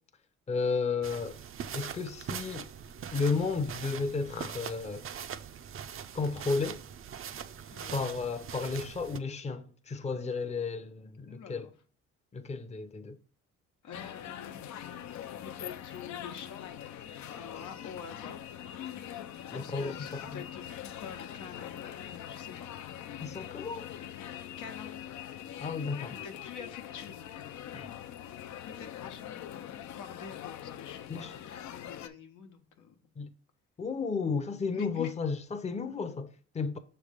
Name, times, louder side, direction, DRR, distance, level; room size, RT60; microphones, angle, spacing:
voice 1, 0.5-1.4 1.7-2.7 3.1-5.1 6.1-6.8 7.9-11.7 12.3-13.2 19.5-20.4 23.2-23.8 25.6-26.2 27.7-27.9 31.1-31.3 33.2-33.3 33.8-36.8, left 4 dB, 20° left, 0.6 m, -33 dB
sound 1, 1.0-9.2, right 8 dB, 45° right, 0.5 m, -42 dB
voice 2, 11.3-11.7 13.8-15.0 15.4-16.6 17.3-18.4 19.5-22.7 24.6-24.9 26.1-27.1 28.6-29.3 30.0-33.1 34.7-35.1, left 7 dB, 85° left, 1.0 m, -46 dB
sound 2, 13.9-32.1, left 10 dB, 65° left, 0.6 m, -43 dB
6.3 x 3.3 x 5.0 m
cardioid pair, 90°, 30 cm